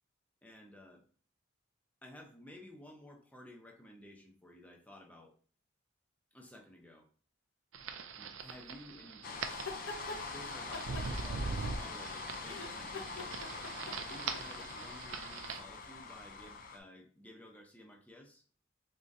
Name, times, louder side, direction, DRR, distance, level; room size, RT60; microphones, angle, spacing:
voice 1, 0.4-1.0 2.0-5.3 6.3-7.1 8.2-9.2 10.3-18.4, left 1 dB, 5° left, 1 dB, 0.7 m, -54 dB
sound 1, 7.7-15.6, right 4 dB, 75° right, 0.5 m, -42 dB
sound 2, 9.2-16.8, left 4 dB, 45° left, 0.5 m, -44 dB
sound 3, 9.5-10.2 10.7-12.1 12.4-14.6, left 3 dB, 80° left, 1.0 m, -44 dB
4.3 x 3.6 x 2.6 m, 0.42 s
head